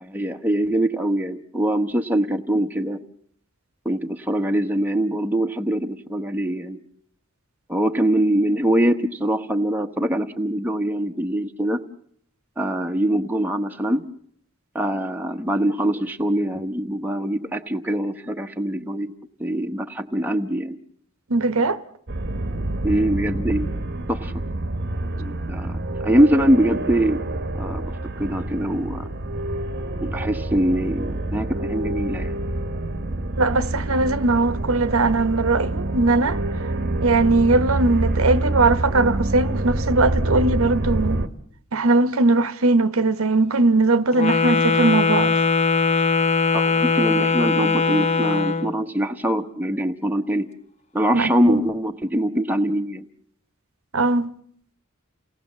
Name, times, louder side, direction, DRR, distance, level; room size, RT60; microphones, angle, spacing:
voice 1, 0.0-3.0 3.8-6.8 7.7-11.8 12.6-14.0 14.7-19.1 19.4-20.8 22.8-23.7 24.1-24.3 25.2-27.2 27.6-27.9 28.2-29.1 30.0-32.4 46.5-50.5 50.9-53.0, right 1 dB, 10° right, 1.0 m, -23 dB
voice 2, 21.3-21.8 33.4-36.4 37.0-41.2 41.7-45.3 51.1-51.6 53.9-54.3, right 3 dB, 75° right, 1.0 m, -20 dB
sound 1, 22.1-41.3, right 1 dB, 50° right, 1.1 m, -27 dB
Wind instrument woodwind instrument, 44.1-48.7, left 4 dB, 30° left, 1.0 m, -20 dB
29.0 x 18.5 x 7.3 m
head